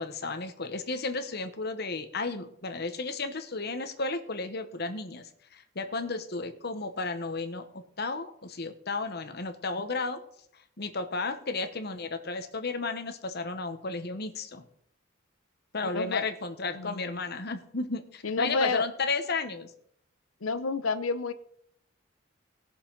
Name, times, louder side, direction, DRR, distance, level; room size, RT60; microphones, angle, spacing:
voice 1, 0.0-10.2 10.8-14.7 15.7-19.7, left 3 dB, 50° left, 7 dB, 1.1 m, -33 dB
voice 2, 15.9-16.2 16.7-17.1 18.2-18.9 20.4-21.3, left 4 dB, 80° left, 13 dB, 0.8 m, -29 dB
19.0 x 6.8 x 4.0 m, 0.68 s
head